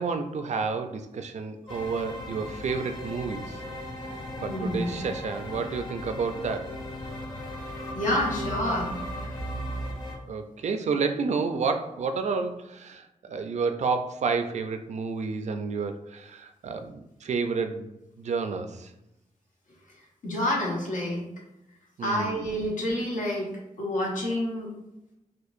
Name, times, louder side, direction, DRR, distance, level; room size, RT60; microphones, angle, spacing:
voice 1, 0.0-3.6 4.4-6.7 10.3-17.9 18.2-18.9 22.0-22.4, right 4 dB, 60° right, 7 dB, 0.4 m, -30 dB
sound 1, 1.7-10.2, equal, 40° left, 1.0 m, -36 dB
voice 2, 4.4-5.0 7.9-9.4 20.2-21.3 22.0-23.5 23.8-24.7, left 1 dB, 85° left, -3 dB, 1.1 m, -28 dB
4.4 x 2.5 x 2.5 m, 0.91 s
wide cardioid pair, 110°, 13 cm